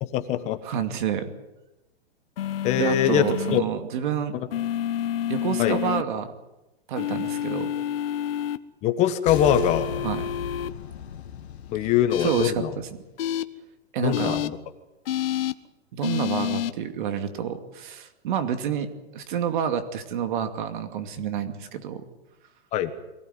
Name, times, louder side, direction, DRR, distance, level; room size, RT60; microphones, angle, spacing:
voice 1, 0.0-0.6 2.6-3.6 4.3-4.5 5.6-5.8 8.8-9.9 11.7-12.7 14.0-14.6 22.7-22.9, left 10 dB, 20° left, 9 dB, 1.3 m, -23 dB
voice 2, 0.6-1.3 2.7-4.3 5.3-6.3 6.9-7.7 10.0-10.3 12.2-12.6 13.9-14.4 15.9-18.9 19.1-22.0, right 8 dB, 50° right, 8 dB, 2.5 m, -28 dB
sound 1, 2.4-3.6 4.5-6.0 7.0-8.6 9.3-10.7 12.1-12.5 13.2-13.4 14.1-14.5 15.1-15.5 16.0-16.7, left 10 dB, 60° left, 1.2 m, -28 dB
sound 2, 9.3-13.3, left 8 dB, 85° left, 1.8 m, -37 dB
24.0 x 17.5 x 9.7 m, 0.97 s
hypercardioid pair, 160°, 32 cm